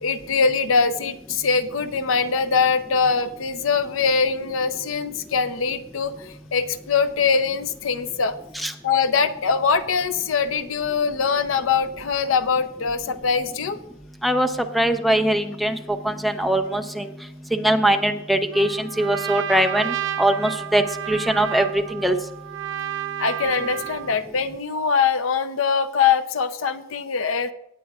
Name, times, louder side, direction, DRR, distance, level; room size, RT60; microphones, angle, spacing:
voice 1, 0.0-8.3 8.8-13.8 23.2-27.5, left 5 dB, 80° left, 11 dB, 0.6 m, -22 dB
voice 2, 14.7-15.8 16.0-17.1 17.5-22.2, right 1 dB, ahead, 7 dB, 0.6 m, -21 dB
Trumpet, 18.5-24.2, right 11 dB, 65° right, 0.6 m, -31 dB
18.0 x 8.4 x 2.4 m, 0.83 s
head